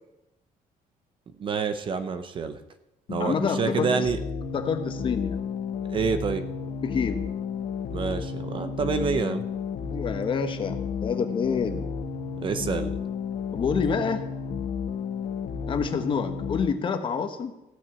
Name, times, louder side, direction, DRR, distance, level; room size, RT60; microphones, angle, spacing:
voice 1, 1.4-2.6 3.1-4.2 5.9-6.4 7.9-9.4 12.4-13.0, right 5 dB, 35° right, 10 dB, 0.7 m, -27 dB
sound 1, 3.1-16.7, left 6 dB, 70° left, 1.2 m, -32 dB
voice 2, 3.2-3.9 4.5-5.4 6.8-7.2 9.8-11.9 13.5-14.2 15.7-17.5, left 6 dB, 35° left, 7 dB, 1.1 m, -27 dB
14.5 x 6.1 x 8.3 m, 0.91 s
cardioid pair, 175°, 15 cm